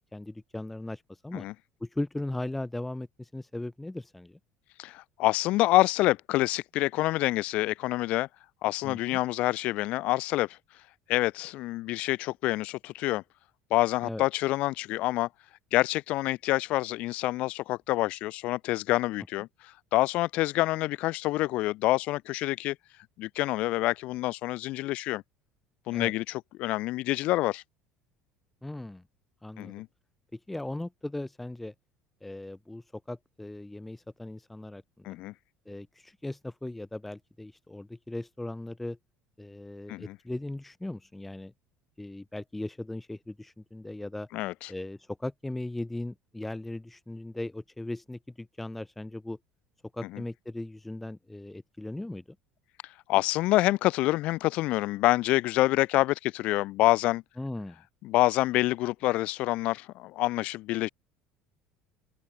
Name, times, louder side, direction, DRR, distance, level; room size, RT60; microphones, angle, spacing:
voice 1, 0.1-1.5 1.8-4.4 8.8-9.2 14.0-14.3 25.9-26.1 28.6-29.0 29.4-29.8 30.3-31.7 32.2-35.1 35.7-39.0 39.4-41.5 42.0-44.3 44.7-49.4 49.9-52.4 57.4-57.8, left 1 dB, 5° left, 0.7 m, -38 dB
voice 2, 4.8-8.3 8.6-10.6 11.1-13.2 13.7-15.3 15.7-19.5 19.9-22.8 23.2-25.2 25.9-27.6 29.6-29.9 35.0-35.3 39.9-40.2 44.3-44.7 53.1-57.2 58.0-60.9, left 18 dB, 50° left, 0.5 m, -27 dB
open air
cardioid pair, 175°, 3 cm